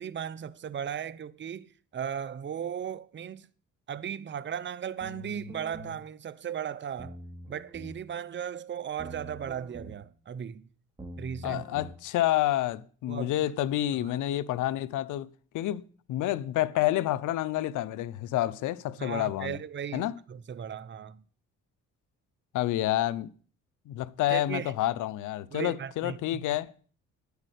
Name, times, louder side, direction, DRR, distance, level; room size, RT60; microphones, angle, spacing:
voice 1, 0.0-3.5 3.9-7.2 7.5-10.7 11.2-11.6 13.1-13.4 13.9-14.1 19.0-21.2 24.3-24.7 25.5-26.4, right 8 dB, 40° right, 0.8 m, -37 dB
sound 1, 5.0-6.0 7.0-8.0 9.0-10.0 11.0-12.0, equal, 15° right, 2.8 m, -44 dB
voice 2, 11.4-15.8 16.1-19.6 19.9-20.1 22.5-23.3 23.9-26.7, left 14 dB, 85° left, 0.8 m, -29 dB
9.9 x 8.2 x 8.3 m
cardioid pair, 90°, 30 cm